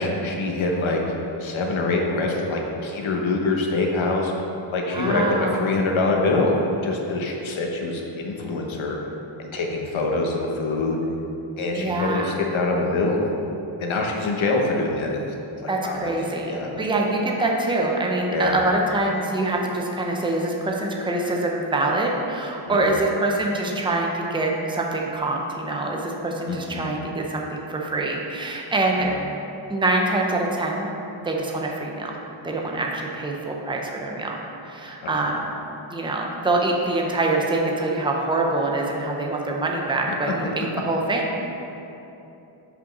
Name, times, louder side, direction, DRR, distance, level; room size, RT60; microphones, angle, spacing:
voice 1, 0.0-4.3 4.7-5.2 5.6-6.5 6.8-9.0 9.4-11.0 11.6-13.2 13.8-15.1 15.8-16.1 16.4-16.7 18.3-18.6 22.7-23.0 26.7-27.0 29.0-29.2, left 3 dB, 75° left, 0 dB, 1.1 m, -25 dB
voice 2, 4.9-5.7 11.7-12.4 15.7-29.1 29.7-30.9 31.2-32.2 32.4-35.5 35.9-41.4, right 2 dB, 10° right, -1 dB, 0.6 m, -25 dB
5.6 x 5.2 x 5.9 m, 2.9 s
wide cardioid pair, 150°, 47 cm